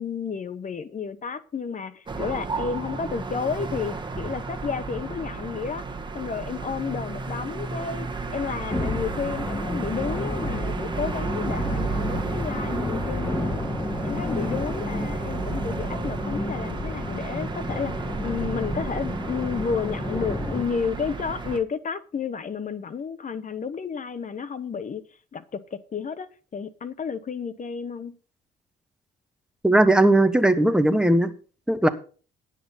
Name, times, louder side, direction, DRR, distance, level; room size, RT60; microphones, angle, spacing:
voice 1, 0.0-5.8 6.1-13.5 14.0-25.0 25.3-28.1, left 6 dB, 40° left, 1.0 m, -31 dB
sound 1, 2.1-21.6, right 4 dB, 25° right, 1.6 m, -33 dB
sound 2, 8.7-20.6, left 1 dB, 10° left, 1.9 m, -31 dB
voice 2, 29.6-31.3 31.7-31.9, right 1 dB, 5° right, 1.3 m, -18 dB
10.0 x 7.5 x 5.6 m
cardioid pair, 90°, 20 cm